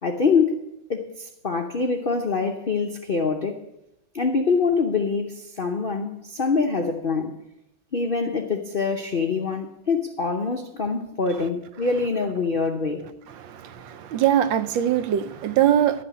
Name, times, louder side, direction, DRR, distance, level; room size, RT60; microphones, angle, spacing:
voice 1, 0.0-3.6 4.1-7.3 7.9-13.1, left 4 dB, 70° left, 0.5 m, -25 dB
voice 2, 13.3-16.0, right 10 dB, 75° right, 1.3 m, -22 dB
11.5 x 6.1 x 8.1 m
omnidirectional pair, 2.2 m